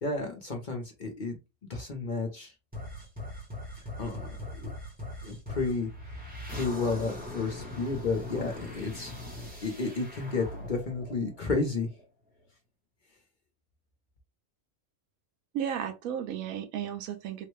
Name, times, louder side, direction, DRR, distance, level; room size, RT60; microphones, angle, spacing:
voice 1, 0.0-1.4 1.7-2.5 4.0-4.7 5.2-6.2 6.5-9.1 9.6-11.9, left 3 dB, 45° left, 0.7 m, -32 dB
sound 1, 2.7-12.0, left 1 dB, 10° right, 0.7 m, -41 dB
voice 2, 15.5-17.5, right 9 dB, 90° right, 1.1 m, -34 dB
3.8 x 2.1 x 3.1 m
omnidirectional pair, 1.4 m